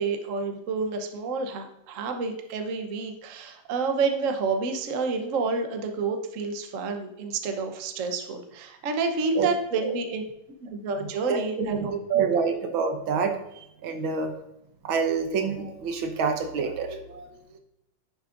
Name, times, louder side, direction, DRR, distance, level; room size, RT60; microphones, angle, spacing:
voice 1, 0.0-10.2 10.6-12.2, right 4 dB, 50° right, 5 dB, 1.0 m, -29 dB
voice 2, 11.3-13.3 13.8-14.3 14.8-17.3, right 5 dB, 70° right, 5 dB, 1.8 m, -27 dB
10.5 x 7.1 x 2.5 m, 0.85 s
omnidirectional pair, 2.3 m